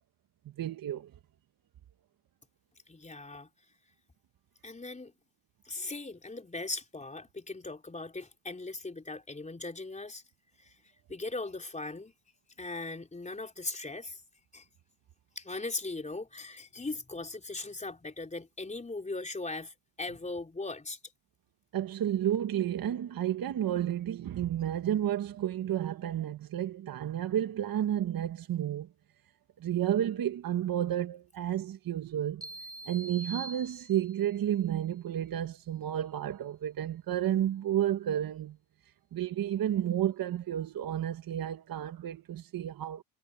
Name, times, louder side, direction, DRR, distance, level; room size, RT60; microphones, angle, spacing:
voice 1, 0.6-1.1 21.7-28.9 29.6-32.5 32.9-38.6 39.1-43.0, right 11 dB, 50° right, 1.4 m, -31 dB
voice 2, 2.9-3.5 4.6-5.1 5.7-10.2 10.6-10.7 11.1-12.1 12.6-14.2 14.5-14.6 15.4-21.0, left 3 dB, 15° left, 3.9 m, -39 dB
sound 1, 32.4-34.3, right 2 dB, 10° right, 7.0 m, -44 dB
cardioid pair, 100°, 46 cm